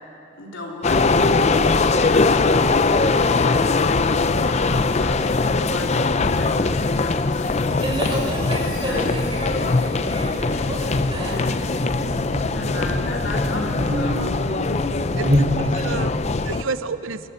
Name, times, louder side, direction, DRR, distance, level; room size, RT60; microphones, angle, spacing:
voice 1, 0.4-7.4 8.6-9.1 12.5-14.6, left 2 dB, 60° left, -1 dB, 3.5 m, -35 dB
sound 1, 0.8-16.6, left 3 dB, 30° left, 0.5 m, -21 dB
Buzz, 4.6-16.0, equal, 40° right, 2.8 m, -30 dB
sound 2, 7.3-11.8, left 7 dB, 90° left, 4.2 m, -47 dB
voice 2, 7.8-11.6, right 1 dB, 25° right, -2 dB, 5.4 m, -30 dB
voice 3, 11.2-11.5 15.2-16.1 16.4-17.3, right 5 dB, 70° right, 12 dB, 0.6 m, -31 dB
23.5 x 15.0 x 9.7 m, 2.8 s
head